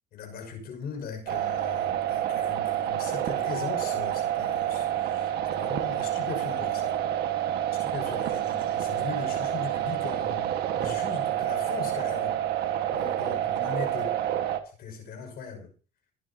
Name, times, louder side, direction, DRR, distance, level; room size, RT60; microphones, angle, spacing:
voice 1, 0.1-7.0 7.8-14.2 14.6-15.7, left 5 dB, 70° left, 5 dB, 6.2 m, -39 dB
sound 1, 1.3-14.6, right 11 dB, 75° right, 1.7 m, -28 dB
25.5 x 10.0 x 2.9 m, 0.37 s
cardioid pair, 110°, 17 cm